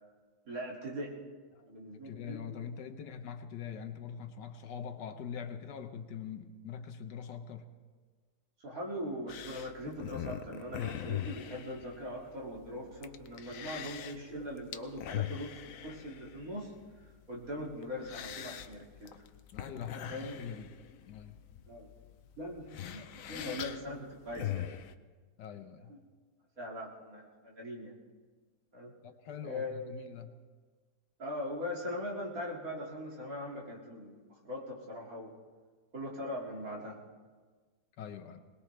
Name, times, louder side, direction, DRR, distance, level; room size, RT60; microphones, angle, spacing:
voice 1, 0.5-1.2 1.6-2.8 8.6-16.7 17.3-19.2 20.1-20.4 21.7-21.9 22.4-24.8 25.9-26.0 26.6-27.9 28.7-28.9 29.4-29.9 31.2-35.3 35.9-37.0, left 1 dB, 55° right, -2 dB, 2.9 m, -41 dB
voice 2, 1.9-7.7 19.5-20.7 21.1-21.4 25.4-25.9 29.0-30.3 38.0-38.4, left 7 dB, 85° left, 8 dB, 1.6 m, -43 dB
sound 1, 9.3-24.9, left 11 dB, 65° left, 1.0 m, -42 dB
21.5 x 19.5 x 3.3 m, 1.5 s
omnidirectional pair, 1.8 m